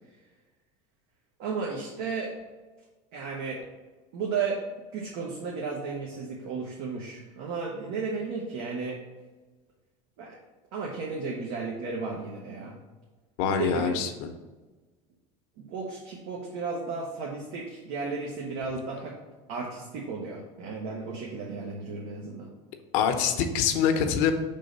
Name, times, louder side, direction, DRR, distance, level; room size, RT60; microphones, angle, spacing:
voice 1, 1.4-2.3 3.1-3.6 4.1-4.7 4.9-9.0 10.2-10.4 10.7-12.7 13.5-14.0 15.6-19.2 19.5-22.5, right 4 dB, 70° right, -1 dB, 1.1 m, -34 dB
voice 2, 13.4-14.3 22.9-24.3, left 7 dB, 65° left, 6 dB, 0.8 m, -25 dB
5.1 x 3.8 x 5.2 m, 1.3 s
supercardioid pair, 135°, 16 cm